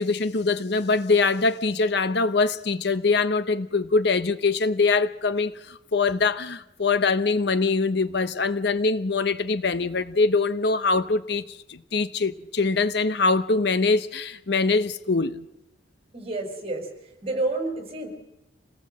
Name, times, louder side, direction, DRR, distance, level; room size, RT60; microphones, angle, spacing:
voice 1, 0.0-15.4, left 4 dB, 65° left, 0.8 m, -23 dB
voice 2, 16.1-16.9 17.2-18.1, right 2 dB, 35° right, 5.0 m, -29 dB
27.5 x 18.5 x 7.7 m
head